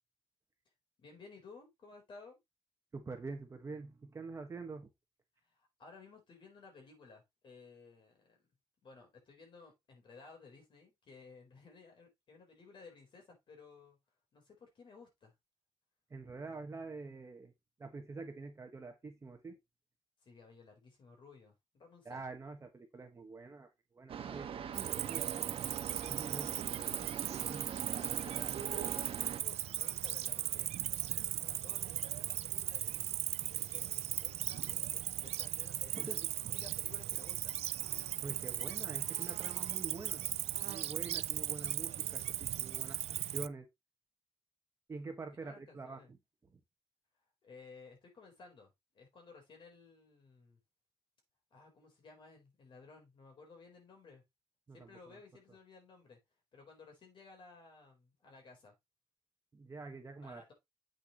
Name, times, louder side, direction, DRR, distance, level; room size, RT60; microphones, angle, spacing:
voice 1, 1.0-2.4 5.4-8.4 8.8-14.0 14.3-15.3 20.2-22.2 26.3-27.5 28.0-30.7 31.3-37.6 45.4-46.1 47.4-50.6 51.5-54.2 54.7-56.2 56.5-58.7 60.2-60.5, left 4 dB, 50° left, 4.2 m, -57 dB
voice 2, 2.9-4.9 16.1-17.5 17.8-19.6 22.0-25.5 26.1-26.5 27.5-27.7 35.9-36.2 38.2-40.3 40.6-43.7 44.9-46.0 46.5-46.6 54.7-55.2 59.5-60.5, right 3 dB, 30° right, 1.6 m, -46 dB
sound 1, 24.1-29.4, right 8 dB, 60° right, 1.3 m, -42 dB
Cricket, 24.7-43.5, right 12 dB, 90° right, 0.4 m, -37 dB
8.4 x 6.5 x 3.1 m
wide cardioid pair, 170°, 10 cm